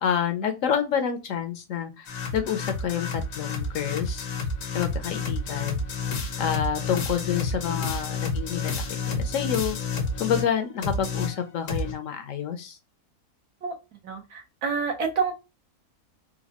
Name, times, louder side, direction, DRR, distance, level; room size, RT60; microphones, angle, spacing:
voice 1, 0.0-2.1 2.3-4.3 4.7-5.8 6.4-12.8, left 8 dB, 65° left, 7 dB, 0.9 m, -28 dB
sound 1, 2.1-10.5 10.8-11.9, left 4 dB, 85° left, 1.4 m, -30 dB
voice 2, 14.0-15.3, right 5 dB, 75° right, 3 dB, 1.5 m, -28 dB
4.0 x 2.3 x 2.8 m, 0.26 s
omnidirectional pair, 1.6 m